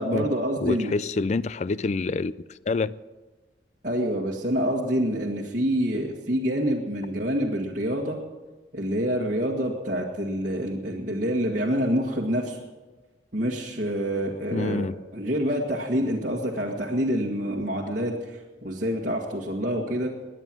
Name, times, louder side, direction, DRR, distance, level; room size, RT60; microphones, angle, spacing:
voice 1, 0.0-0.9 3.8-8.2 8.7-12.6 13.3-14.9 15.1-20.1, equal, 45° right, 1.8 m, -27 dB
voice 2, 0.6-3.0 14.5-15.0, left 3 dB, 40° left, 0.4 m, -27 dB
21.5 x 9.2 x 6.1 m
head